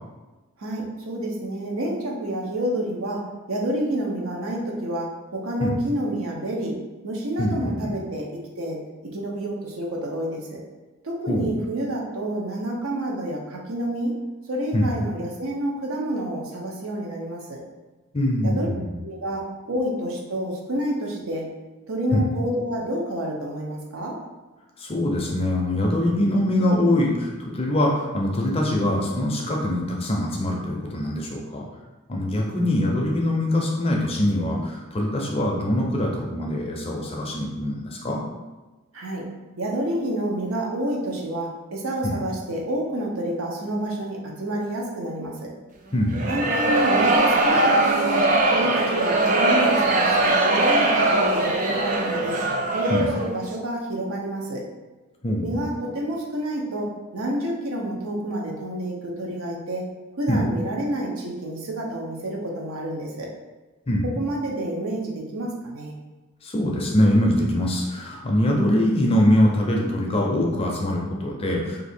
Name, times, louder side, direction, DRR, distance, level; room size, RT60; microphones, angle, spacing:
voice 1, 0.6-6.7 7.0-10.6 11.0-14.1 14.5-17.6 18.4-18.7 19.0-21.5 21.9-24.2 32.4-32.9 38.9-39.3 39.6-45.5 46.3-48.2 48.5-52.4 52.7-54.6 55.4-56.9 57.1-59.8 60.2-63.3 64.2-65.9, right 1 dB, 70° right, -2 dB, 0.7 m, -29 dB
voice 2, 7.4-7.9 11.3-11.5 14.7-14.9 18.1-18.9 22.1-22.2 24.8-31.6 32.1-38.2 42.0-42.2 45.9-46.5 52.9-53.1 55.2-55.7 60.3-60.4 63.9-64.1 66.4-71.8, left 1 dB, 25° left, -1 dB, 0.5 m, -23 dB
Grumbling Audience, 46.1-53.3, right 2 dB, 35° right, 0.4 m, -21 dB
2.7 x 2.6 x 4.2 m, 1.2 s
head